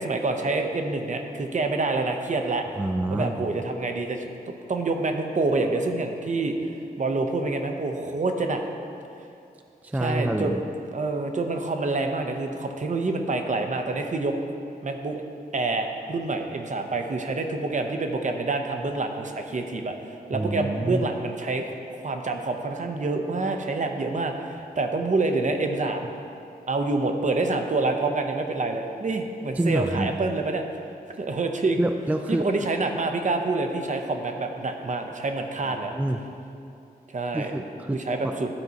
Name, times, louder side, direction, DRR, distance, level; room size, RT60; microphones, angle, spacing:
voice 1, 0.0-2.6 3.1-4.3 4.7-8.6 10.0-10.6 10.9-14.4 14.8-15.2 15.5-21.6 22.0-26.1 26.7-30.6 31.2-31.8 32.3-35.9 37.1-37.5 38.1-38.5, right 3 dB, 50° right, 4 dB, 0.7 m, -27 dB
voice 2, 2.8-3.4 9.8-10.6 20.3-21.1 29.6-30.1 31.8-32.5 35.7-36.2 37.3-38.3, right 1 dB, 10° right, 6 dB, 0.4 m, -27 dB
12.0 x 4.6 x 4.0 m, 2.6 s
cardioid pair, 70°, 16 cm